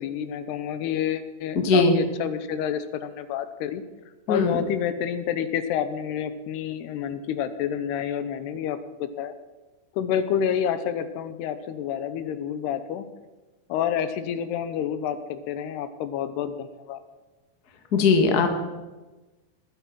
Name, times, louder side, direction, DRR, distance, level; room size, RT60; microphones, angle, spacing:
voice 1, 0.0-3.8 4.3-9.3 9.9-13.1 13.7-17.0, left 9 dB, 75° left, 11 dB, 2.9 m, -29 dB
voice 2, 1.5-1.9 4.3-4.6 17.9-18.5, left 4 dB, 50° left, 4 dB, 1.1 m, -19 dB
19.5 x 12.0 x 6.1 m, 1.2 s
omnidirectional pair, 4.9 m